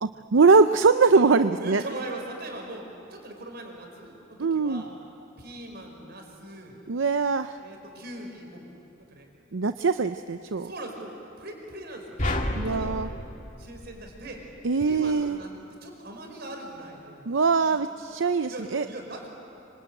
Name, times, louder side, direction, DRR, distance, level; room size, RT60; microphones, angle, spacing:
voice 1, 0.0-1.8 4.4-4.8 6.9-7.6 9.5-10.7 12.6-13.1 14.6-15.4 17.3-18.8, right 4 dB, 80° right, 10 dB, 0.6 m, -22 dB
voice 2, 1.2-4.2 4.5-4.9 5.4-6.8 7.6-8.6 8.9-9.3 10.0-10.1 10.6-11.1 11.4-12.9 13.6-14.4 14.8-17.3 17.6-17.8 18.5-19.3, right 1 dB, 55° right, 2 dB, 5.4 m, -40 dB
sound 1, 12.2-14.6, left 1 dB, 40° left, 2.0 m, -31 dB
26.0 x 25.5 x 9.0 m, 2.9 s
head